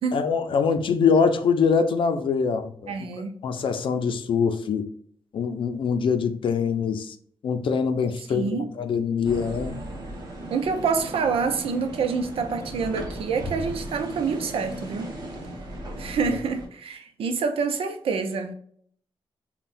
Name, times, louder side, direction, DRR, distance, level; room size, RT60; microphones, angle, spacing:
voice 1, 0.1-3.1 3.4-4.9 5.3-7.1 7.4-9.8, left 6 dB, 65° left, 0.5 m, -24 dB
voice 2, 2.9-3.3 8.3-8.7 10.5-15.1 16.0-18.5, right 5 dB, 80° right, 0.6 m, -27 dB
sound 1, 9.2-16.7, right 1 dB, 45° right, 1.1 m, -36 dB
5.5 x 2.3 x 2.5 m
wide cardioid pair, 140°, 9 cm